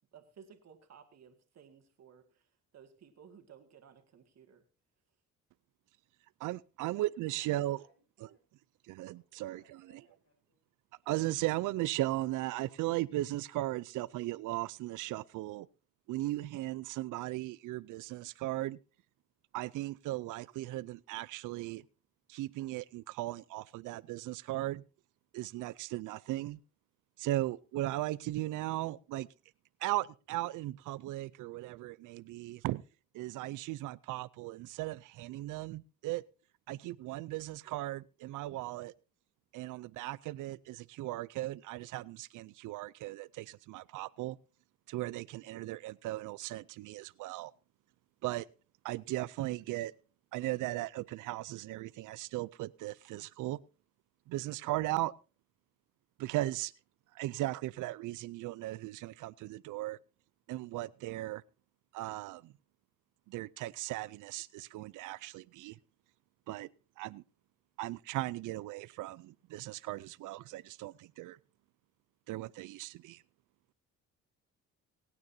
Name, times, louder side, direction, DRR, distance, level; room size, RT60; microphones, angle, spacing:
voice 1, 0.1-2.5 2.7-4.6, right 7 dB, 60° right, 2.1 m, -57 dB
voice 2, 6.4-7.8 8.9-9.6 11.1-15.7 16.1-18.8 19.5-21.8 22.3-24.8 25.3-26.6 27.2-29.3 29.8-32.8 33.1-36.2 36.7-38.9 39.5-44.4 44.9-47.5 48.2-48.5 48.8-49.9 50.3-53.6 54.3-55.1 56.2-56.7 57.1-60.0 60.5-61.4 61.9-62.5 63.3-65.8 66.5-66.7 67.0-67.2 67.8-71.4 72.3-73.2, right 17 dB, 85° right, 0.5 m, -37 dB
voice 3, 7.2-8.4 9.1-9.3 9.6-10.6, left 2 dB, 55° left, 7.2 m, -68 dB
22.5 x 9.5 x 2.7 m
cardioid pair, 90°, 30 cm